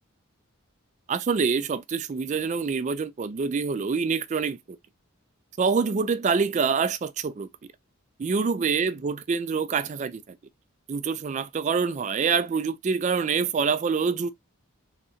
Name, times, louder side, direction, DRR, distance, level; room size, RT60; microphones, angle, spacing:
voice 1, 1.1-4.8 5.6-7.5 8.2-10.2 10.9-14.3, right 5 dB, 35° right, 0.3 m, -26 dB
3.2 x 2.7 x 2.6 m
head